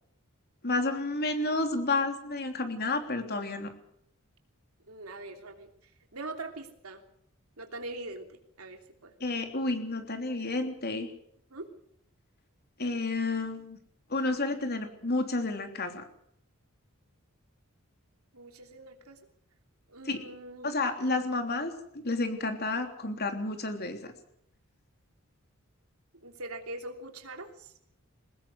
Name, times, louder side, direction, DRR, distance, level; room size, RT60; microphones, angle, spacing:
voice 1, 0.6-3.7 9.2-11.1 12.8-13.8 14.1-16.0 20.1-20.2 20.6-24.1, left 2 dB, 50° left, 6 dB, 3.3 m, -31 dB
voice 2, 4.9-5.7 6.1-7.0 7.6-9.1 11.5-11.7 18.3-19.2 19.9-20.7 26.2-27.7, right 2 dB, 90° right, 5 dB, 3.2 m, -42 dB
22.0 x 19.5 x 6.5 m, 0.73 s
head